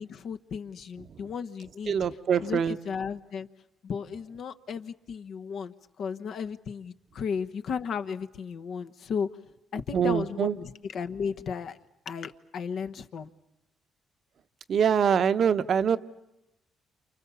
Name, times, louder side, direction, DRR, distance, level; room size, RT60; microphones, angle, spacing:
voice 1, 0.0-2.1 2.4-3.5 3.8-9.3 9.7-11.8 12.0-13.3, left 6 dB, 65° left, 9 dB, 1.1 m, -34 dB
voice 2, 1.9-2.8 9.9-10.5 14.7-16.0, right 7 dB, 60° right, 11 dB, 1.0 m, -24 dB
28.5 x 28.5 x 7.1 m, 0.93 s
cardioid pair, 90°, 0 cm